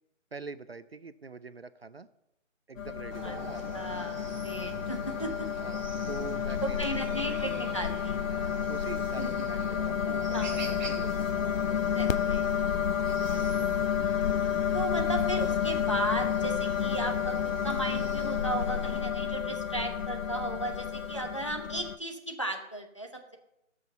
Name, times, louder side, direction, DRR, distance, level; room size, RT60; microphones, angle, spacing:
voice 1, 0.3-2.1 2.7-3.8 5.6-7.6 8.7-11.4 13.2-13.6, right 4 dB, 50° right, 14 dB, 0.5 m, -44 dB
sound 1, 2.8-22.0, left 8 dB, 80° left, 0.7 m, -30 dB
Chicken rooster, 3.1-19.0, right 2 dB, 35° right, 2.0 m, -43 dB
voice 2, 3.7-5.5 6.6-8.2 9.2-9.6 10.3-10.6 11.9-12.4 14.7-17.4 17.6-23.4, right 1 dB, 25° left, 2 dB, 0.7 m, -35 dB
18.5 x 6.3 x 5.7 m, 0.87 s
hypercardioid pair, 175°, 39 cm